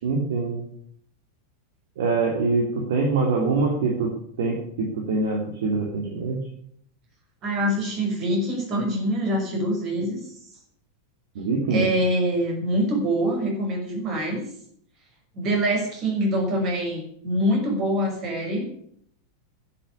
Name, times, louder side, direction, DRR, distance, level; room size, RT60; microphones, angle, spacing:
voice 1, 0.0-0.6 2.0-4.1 4.4-6.4 11.3-11.8, right 3 dB, 55° right, 0 dB, 3.0 m, -24 dB
voice 2, 7.4-10.2 11.7-14.4 15.3-18.7, equal, 35° right, 2 dB, 5.8 m, -24 dB
10.5 x 8.8 x 9.8 m, 0.65 s
figure-of-eight pair, 90°, 0 cm